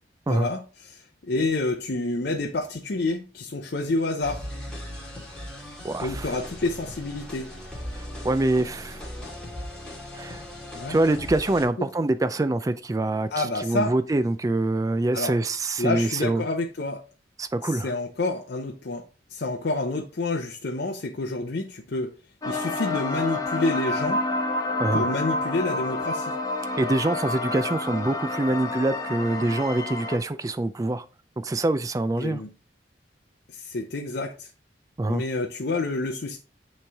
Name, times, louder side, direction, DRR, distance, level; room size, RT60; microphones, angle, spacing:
voice 1, 0.3-4.5 6.0-7.5 10.7-11.0 13.3-13.9 15.1-15.3 15.8-17.0 17.7-19.0 19.3-22.1 22.5-24.3 24.9-26.4 32.2-32.5 33.5-34.5 35.1-36.4, left 2 dB, 65° left, 0.6 m, -28 dB
sound 1, 4.2-11.7, left 1 dB, 5° left, 1.9 m, -38 dB
voice 2, 5.8-6.3 7.9-9.0 10.1-10.4 10.9-16.4 17.4-17.9 24.8-25.1 26.8-31.0 31.4-32.4 35.0-35.2, right 2 dB, 20° right, 0.3 m, -25 dB
sound 2, 22.4-30.2, left 2 dB, 20° left, 0.9 m, -29 dB
8.7 x 3.2 x 3.4 m
head